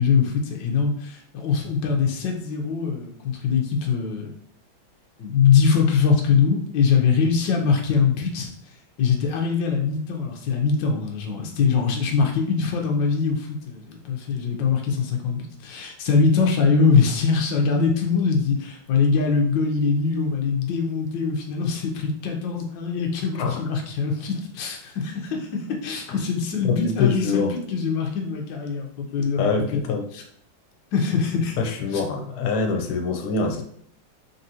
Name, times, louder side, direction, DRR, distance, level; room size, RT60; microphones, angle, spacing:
voice 1, 0.0-4.3 5.2-8.5 9.0-29.8 30.1-30.2 30.9-31.6 31.9-32.0, left 5 dB, 65° left, 1 dB, 1.4 m, -22 dB
voice 2, 26.6-27.5 29.4-30.1 31.6-33.6, left 5 dB, 85° left, 4 dB, 1.5 m, -24 dB
4.0 x 3.7 x 2.8 m, 0.64 s
omnidirectional pair, 2.3 m